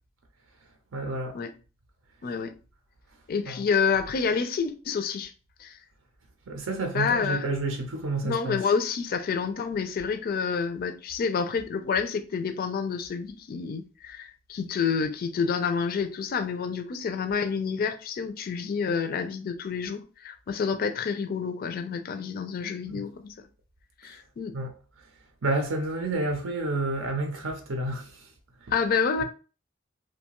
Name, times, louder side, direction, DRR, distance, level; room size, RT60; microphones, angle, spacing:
voice 1, 0.9-1.3 3.5-3.6 6.5-8.6 22.9-23.0 24.5-24.7 25.4-28.1, right 2 dB, 90° right, 0.6 m, -29 dB
voice 2, 3.3-5.3 5.6-5.8 6.9-7.5 8.2-23.3 24.0-24.5 28.7-29.2, left 5 dB, 50° left, 0.4 m, -28 dB
2.6 x 2.2 x 2.9 m
head